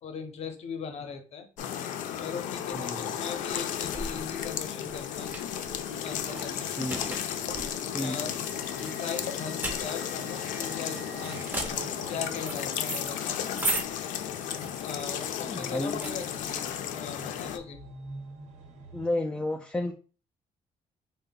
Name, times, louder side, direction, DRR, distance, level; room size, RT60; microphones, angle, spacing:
voice 1, 0.0-1.5 2.2-5.3 6.0-6.7 8.0-8.3 8.8-11.5 12.1-13.4 14.8-17.8, left 6 dB, 55° left, 7 dB, 0.7 m, -39 dB
sound 1, 1.6-17.6, left 9 dB, 90° left, 0.4 m, -34 dB
voice 2, 2.7-3.1 6.8-7.0 7.9-8.2 15.5-16.2 18.9-19.9, left 1 dB, 5° left, 2 dB, 0.3 m, -32 dB
sound 2, 3.3-17.0, right 2 dB, 15° right, 0.7 m, -38 dB
sound 3, 5.1-19.1, right 3 dB, 75° right, 1.0 m, -48 dB
3.7 x 2.1 x 3.9 m, 0.37 s
cardioid pair, 150°, 13 cm